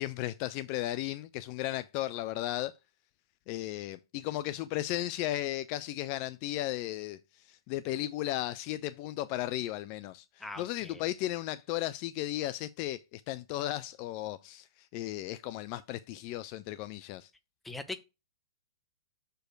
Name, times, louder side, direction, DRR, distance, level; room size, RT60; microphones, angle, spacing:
voice 1, 0.0-2.7 3.5-17.3, left 15 dB, 35° left, 0.4 m, -35 dB
voice 2, 10.4-11.1 17.6-18.0, left 2 dB, 5° left, 0.8 m, -41 dB
6.4 x 4.6 x 4.6 m
figure-of-eight pair, 110°, 2 cm